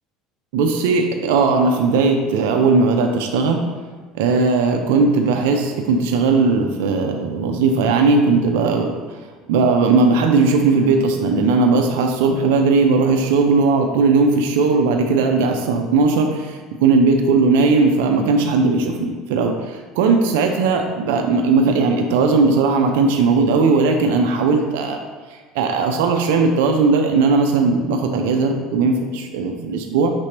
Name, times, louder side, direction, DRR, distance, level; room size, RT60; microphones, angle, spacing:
voice 1, 0.5-3.6 4.1-9.2 9.5-25.0 25.3-30.1, right 4 dB, 80° right, 3 dB, 0.4 m, -17 dB
5.9 x 3.1 x 2.9 m, 1.4 s
supercardioid pair, 95°, 0 cm